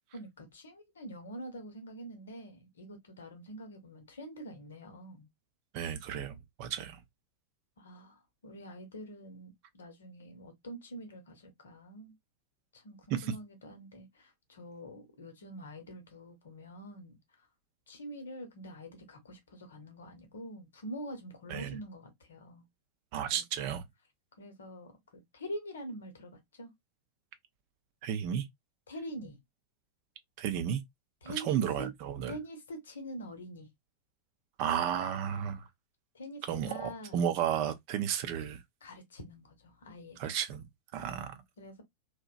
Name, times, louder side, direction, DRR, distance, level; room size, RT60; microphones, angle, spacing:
voice 1, 0.1-5.3 7.8-12.1 12.7-17.5 17.9-22.6 23.3-23.7 24.4-26.7 28.9-29.4 31.2-31.9 32.3-33.7 36.1-37.3 38.8-40.2 41.0-41.8, equal, 65° left, 0.9 m, -45 dB
voice 2, 5.7-7.0 13.1-13.3 21.5-21.8 23.1-23.8 28.0-28.5 30.4-30.8 31.3-32.3 34.6-35.7 36.5-38.6 40.2-40.7 40.9-41.3, right 9 dB, 45° right, 0.5 m, -33 dB
2.8 x 2.1 x 2.4 m
figure-of-eight pair, 90°, 0 cm